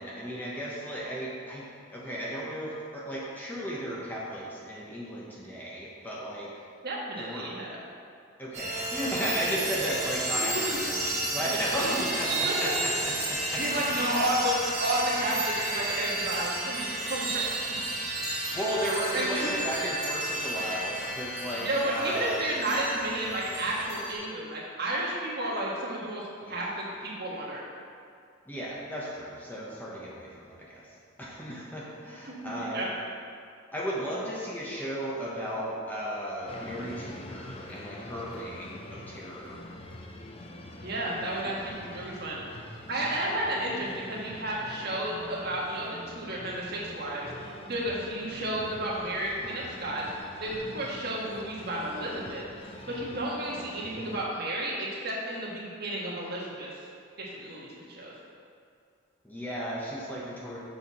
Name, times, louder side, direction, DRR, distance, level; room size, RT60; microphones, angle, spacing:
voice 1, 0.0-6.5 7.2-7.5 8.4-14.3 18.5-22.3 26.4-26.7 28.5-30.8 31.2-32.8 33.7-39.6 41.6-41.9 59.2-60.6, equal, 10° left, -5 dB, 0.8 m, -35 dB
voice 2, 6.8-7.8 10.4-10.6 11.8-11.9 12.4-12.5 13.6-17.4 19.1-19.5 21.6-26.2 26.5-27.6 32.2-32.9 40.8-42.5 42.9-50.0 50.4-52.4 52.9-56.7 57.2-58.1, right 1 dB, 50° right, -5 dB, 1.4 m, -32 dB
sound 1, 8.5-24.1, right 2 dB, 35° right, 1.7 m, -32 dB
sound 2, 36.5-54.3, left 1 dB, 25° left, 0.5 m, -45 dB
6.9 x 5.7 x 4.2 m, 2.4 s
head